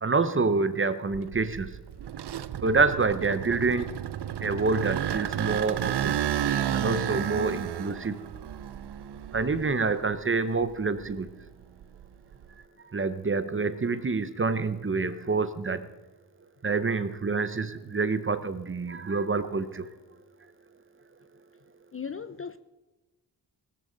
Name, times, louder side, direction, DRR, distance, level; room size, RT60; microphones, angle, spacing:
voice 1, 0.0-1.7 2.6-3.9 4.4-6.2 6.7-8.2 9.3-11.3 12.9-15.9 16.6-19.9, right 4 dB, 30° right, 0.8 m, -27 dB
sound 1, 1.1-10.2 10.6-12.5, right 10 dB, 70° right, 0.6 m, -32 dB
voice 2, 21.9-22.6, left 6 dB, 35° left, 0.4 m, -37 dB
18.5 x 14.0 x 4.0 m
wide cardioid pair, 125°, 41 cm